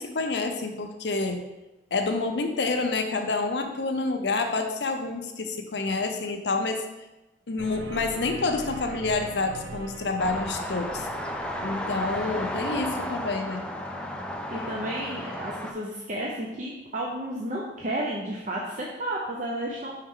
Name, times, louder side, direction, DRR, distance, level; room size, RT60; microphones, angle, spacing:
voice 1, 0.0-1.4 1.9-6.8 7.5-11.1 11.6-13.7, left 3 dB, 75° left, 5 dB, 0.7 m, -28 dB
sound 1, 7.6-12.9, right 3 dB, 80° right, 0.7 m, -42 dB
sound 2, 10.2-15.7, left 1 dB, 5° left, 0.4 m, -33 dB
voice 2, 14.5-20.0, right 1 dB, 45° right, -3 dB, 0.6 m, -32 dB
5.6 x 4.6 x 3.6 m, 1.0 s
head